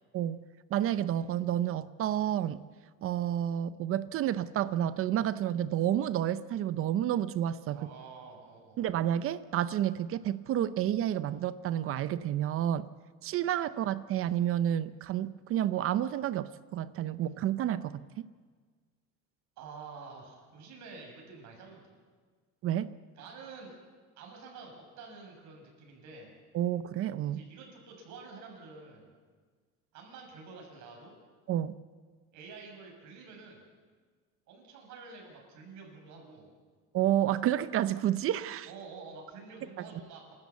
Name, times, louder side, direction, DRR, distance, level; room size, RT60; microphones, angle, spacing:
voice 1, 0.1-0.4 0.7-2.6 3.0-7.8 8.8-12.8 13.2-18.3 22.6-22.9 26.5-27.4 31.5-31.7 36.9-38.7, right 11 dB, 45° right, 14 dB, 0.6 m, -30 dB
voice 2, 7.7-8.9 19.6-21.9 23.2-23.7 24.2-26.3 27.3-29.1 29.9-31.2 32.3-33.6 34.5-36.5 38.7-40.3, right 4 dB, 65° right, 1 dB, 6.9 m, -48 dB
29.0 x 13.5 x 8.3 m, 1.5 s
cardioid pair, 155°, 31 cm